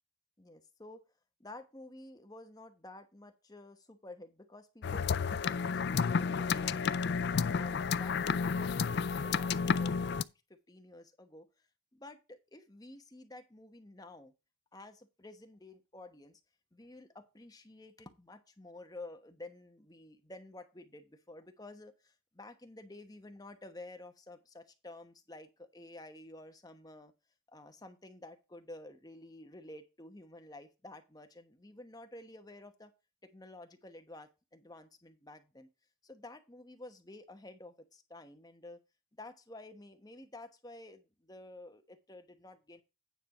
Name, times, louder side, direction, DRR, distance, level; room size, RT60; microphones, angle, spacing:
voice 1, 0.4-1.0 1.4-7.1 7.5-11.5 11.9-14.3 14.7-16.4 16.7-27.1 27.5-32.9 33.2-35.7 36.0-38.8 39.1-42.8, left 2 dB, 20° left, 7 dB, 1.0 m, -51 dB
sound 1, 4.8-10.2, left 5 dB, 50° left, 0.3 m, -31 dB
9.3 x 4.5 x 5.5 m, 0.28 s
head